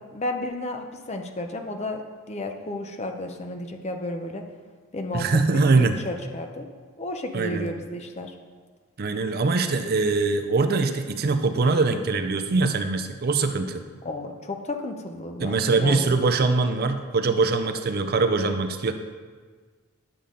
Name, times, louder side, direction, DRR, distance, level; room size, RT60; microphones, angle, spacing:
voice 1, 0.0-2.0 2.3-4.4 4.9-5.2 5.5-6.7 7.0-8.3 14.0-16.2, left 1 dB, 30° left, 4 dB, 0.7 m, -32 dB
voice 2, 5.1-6.0 7.3-7.7 9.0-13.8 15.4-18.9, right 3 dB, 45° right, 8 dB, 0.5 m, -22 dB
10.0 x 6.9 x 3.8 m, 1.5 s
head